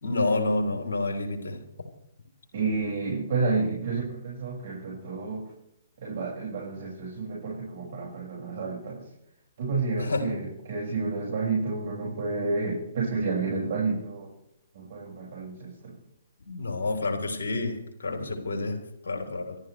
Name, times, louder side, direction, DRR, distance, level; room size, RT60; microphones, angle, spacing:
voice 1, 0.0-1.6 10.0-10.2 16.5-18.8 19.0-19.6, left 2 dB, 65° left, 3 dB, 3.9 m, -29 dB
voice 2, 2.5-5.5 6.0-9.1 9.6-14.3 14.7-16.0, right 4 dB, 55° right, -3 dB, 6.1 m, -30 dB
28.0 x 12.0 x 3.3 m, 0.81 s
figure-of-eight pair, 125°, 0 cm